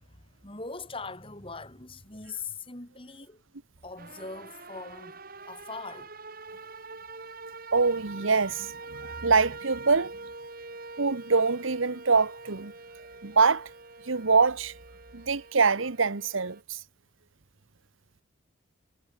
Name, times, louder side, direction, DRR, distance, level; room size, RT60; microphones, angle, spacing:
voice 1, 0.0-3.4 3.8-5.2 5.5-6.1, left 4 dB, 25° left, 3.6 m, -41 dB
sound 1, 4.0-16.6, right 3 dB, 45° right, 3.3 m, -45 dB
voice 2, 7.7-8.7 9.0-10.1 11.0-12.7 13.2-13.7 14.1-14.7 15.1-16.8, right 4 dB, 85° right, 1.3 m, -24 dB
head